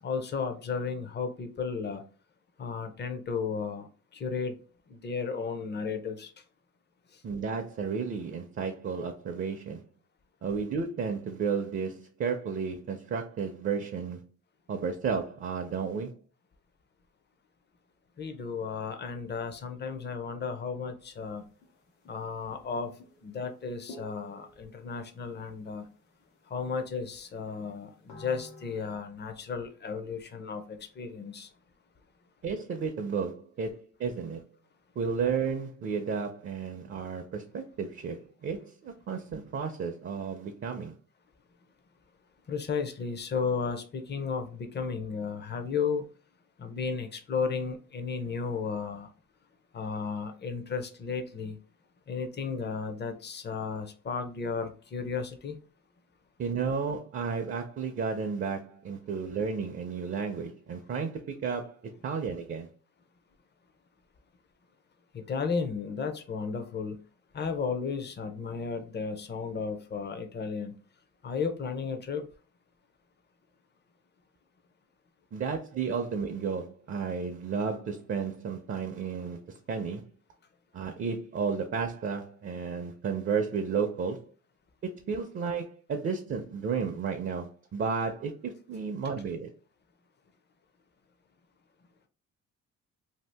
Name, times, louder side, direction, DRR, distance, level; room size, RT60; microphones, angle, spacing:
voice 1, 0.0-2.0 2.6-4.6 4.9-6.3 7.1-7.2 18.2-21.5 22.1-22.9 23.2-25.9 26.5-31.5 42.5-46.0 46.6-49.1 49.7-51.6 52.1-55.6 65.1-67.0 67.3-70.7 71.2-72.3, left 5 dB, 35° left, 0.6 m, -34 dB
voice 2, 7.2-9.8 10.4-14.2 14.7-16.1 32.4-34.4 35.0-40.9 56.4-62.7 75.3-80.0 80.7-84.3 85.0-89.5, right 5 dB, 45° right, 0.5 m, -33 dB
sound 1, 21.1-21.7 22.0-22.1 22.5-22.7 23.0-24.9 25.3-25.8 26.2-26.3 26.7-26.8 27.4-28.8, left 1 dB, 80° left, 1.1 m, -50 dB
2.7 x 2.4 x 3.4 m
cardioid pair, 90°, 30 cm